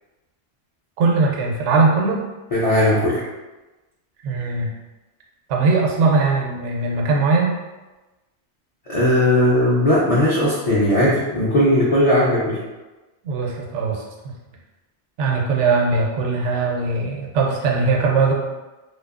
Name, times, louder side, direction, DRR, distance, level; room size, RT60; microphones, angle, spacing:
voice 1, 1.0-2.2 4.2-4.7 5.5-7.5 13.2-14.3 15.2-18.3, right 4 dB, 85° right, -1 dB, 0.9 m, -20 dB
voice 2, 2.5-3.2 8.9-12.6, left 1 dB, 55° left, -7 dB, 0.4 m, -17 dB
2.6 x 2.3 x 2.4 m, 1.1 s
omnidirectional pair, 1.2 m